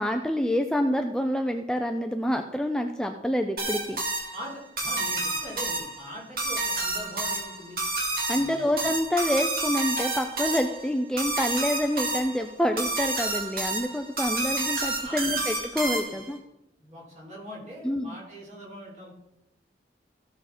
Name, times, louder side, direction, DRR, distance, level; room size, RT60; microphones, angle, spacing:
voice 1, 0.0-4.0 8.3-16.4 17.8-18.2, equal, 5° left, 5 dB, 0.4 m, -27 dB
sound 1, 3.6-16.3, right 2 dB, 55° right, 2.3 m, -30 dB
voice 2, 4.3-7.8 8.3-8.8 15.0-15.4 16.8-19.1, equal, 40° right, -4 dB, 4.0 m, -42 dB
15.0 x 6.5 x 4.2 m, 0.88 s
head